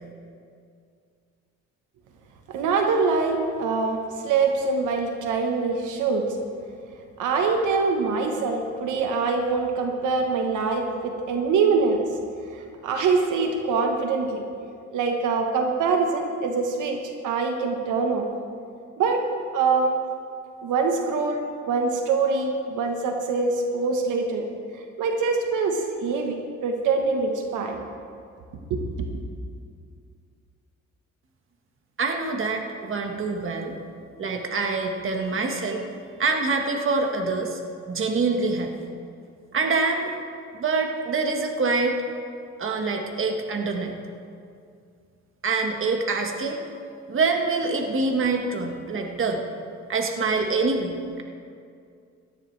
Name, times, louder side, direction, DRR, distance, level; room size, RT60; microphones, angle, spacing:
voice 1, 2.5-6.3 7.2-12.1 12.5-14.4 14.9-18.3 19.0-19.2 19.5-20.0 20.6-24.5 25.0-27.8 28.7-29.1, right 4 dB, 80° right, 3 dB, 1.3 m, -24 dB
voice 2, 32.0-33.7 34.2-35.8 36.2-37.6 37.9-38.7 39.5-40.1 40.5-41.9 42.6-43.9 45.4-46.6 47.1-49.4 49.9-51.2, right 4 dB, 45° right, 3 dB, 1.6 m, -25 dB
17.5 x 13.0 x 3.3 m, 2.3 s
cardioid pair, 90°, 30 cm